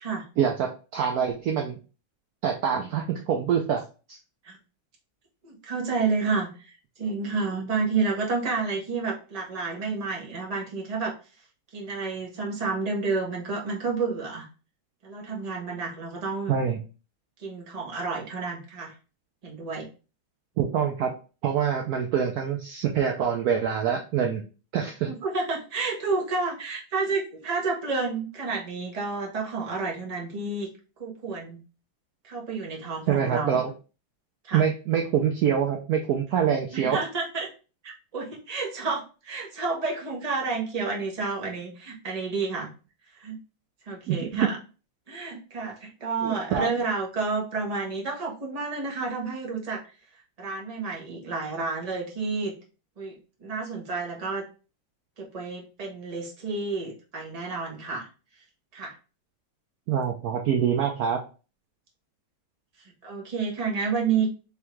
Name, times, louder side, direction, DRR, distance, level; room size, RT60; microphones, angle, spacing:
voice 1, 0.4-1.7 2.4-3.8 4.1-4.2 16.5-16.8 20.6-21.1 21.4-24.4 24.7-25.1 33.1-33.7 34.5-37.0 44.1-44.5 46.2-46.7 59.9-61.2, right 8 dB, 80° right, 2 dB, 0.8 m, -25 dB
voice 2, 5.4-11.1 11.7-14.5 15.0-16.6 17.4-18.9 19.4-19.9 25.0-30.7 31.0-31.6 32.2-33.6 34.4-34.6 36.7-37.5 37.8-42.7 43.2-43.4 43.9-44.6 45.1-49.8 50.4-52.5 53.0-54.4 55.2-58.1 58.7-58.9 63.0-64.3, right 4 dB, 30° right, -1 dB, 0.8 m, -30 dB
3.6 x 3.4 x 3.1 m, 0.34 s
omnidirectional pair, 2.2 m